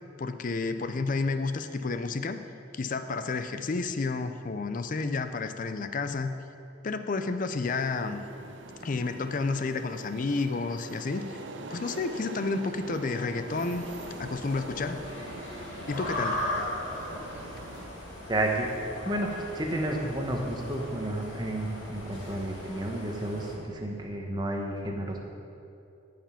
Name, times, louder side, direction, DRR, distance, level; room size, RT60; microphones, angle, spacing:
voice 1, 0.2-2.4 2.7-6.3 6.8-8.2 8.8-11.4 11.7-13.9 14.2-15.0 15.9-16.5 17.1-17.2, left 3 dB, 40° left, 10 dB, 0.5 m, -31 dB
sound 1, 7.6-17.9, right 3 dB, 65° right, 0.6 m, -44 dB
sound 2, 13.5-23.6, left 1 dB, 65° left, 2.1 m, -38 dB
voice 2, 18.3-18.7 19.0-25.2, right 1 dB, 20° right, 1 dB, 1.0 m, -31 dB
14.5 x 5.1 x 5.7 m, 2.7 s
head